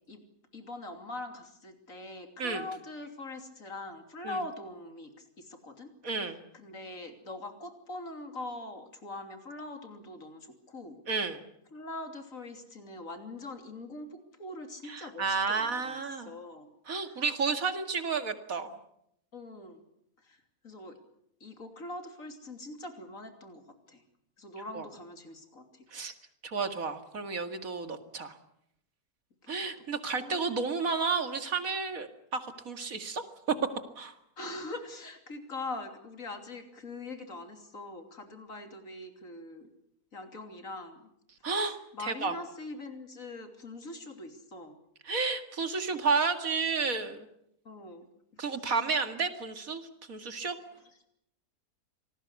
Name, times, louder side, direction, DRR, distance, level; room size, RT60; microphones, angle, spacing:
voice 1, 0.5-5.9 6.3-11.0 11.7-16.0 16.2-16.7 17.0-17.2 19.3-19.8 20.2-21.0 21.4-23.6 23.9-24.0 24.4-25.8 29.4-29.7 30.2-30.5 34.4-39.7 40.1-41.1 41.4-44.8 47.7-48.1 48.3-48.7, left 2 dB, 60° left, 6 dB, 3.5 m, -43 dB
voice 2, 6.0-6.4 11.1-11.4 14.9-16.3 16.9-18.7 24.7-24.9 25.9-26.1 26.4-28.4 29.5-33.2 34.0-34.1 41.4-42.3 45.1-47.3 48.4-49.8 50.1-50.6, right 4 dB, 65° right, 8 dB, 2.5 m, -31 dB
26.0 x 19.5 x 8.3 m, 0.76 s
omnidirectional pair, 1.6 m